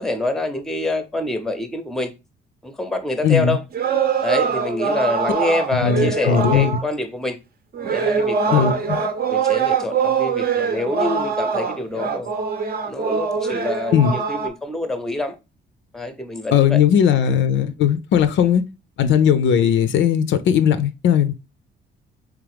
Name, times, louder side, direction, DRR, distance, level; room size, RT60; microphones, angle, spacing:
voice 1, 0.0-2.1 2.6-3.6 4.2-7.4 7.9-8.8 9.3-12.3 12.8-15.4 15.9-16.8 19.5-19.6, left 2 dB, ahead, 0.6 m, -26 dB
voice 2, 3.2-3.6 5.7-6.8 8.5-9.0 13.9-14.1 16.5-18.6 19.0-21.3, left 8 dB, 70° left, 0.5 m, -18 dB
sound 1, 3.7-6.8 7.7-14.5, right 6 dB, 50° right, 0.6 m, -23 dB
3.6 x 3.1 x 3.4 m
cardioid pair, 90°, 20 cm